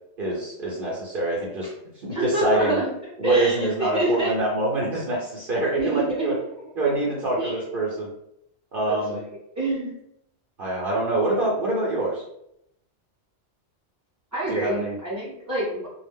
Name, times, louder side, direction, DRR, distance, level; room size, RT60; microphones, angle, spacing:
voice 1, 0.2-1.7 1.9-2.8 3.2-6.3 6.8-8.1 8.7-9.2 10.6-12.2 14.5-15.0, right 2 dB, 55° right, -5 dB, 0.8 m, -25 dB
voice 2, 2.1-2.9 3.2-4.3 5.8-6.3 7.4-7.6 8.9-9.2 9.5-9.9 14.3-15.9, right 1 dB, 20° right, -9 dB, 0.6 m, -27 dB
2.3 x 2.1 x 3.4 m, 0.77 s
omnidirectional pair, 1.2 m